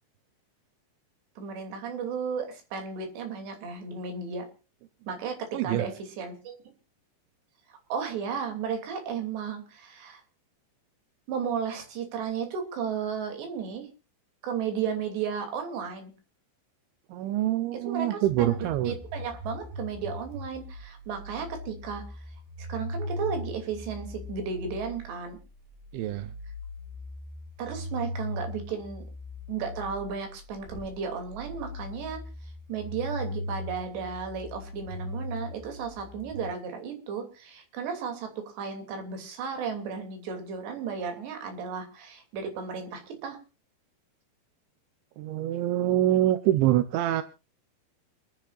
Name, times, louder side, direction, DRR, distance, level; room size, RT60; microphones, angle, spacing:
voice 1, 1.4-4.5 5.1-5.9 6.2-6.5 7.9-10.2 11.3-13.9 14.4-16.1 17.8-18.5 18.9-22.0 22.6-25.4 27.6-29.0 29.5-32.2 32.7-43.4, right 6 dB, 70° right, 5 dB, 5.0 m, -34 dB
voice 2, 5.5-5.9 17.1-18.9 25.9-26.3 45.2-47.2, right 13 dB, 90° right, 11 dB, 3.2 m, -25 dB
sound 1, 18.2-36.5, left 1 dB, 45° right, 4.0 m, -39 dB
28.5 x 10.0 x 2.5 m, 0.32 s
omnidirectional pair, 5.1 m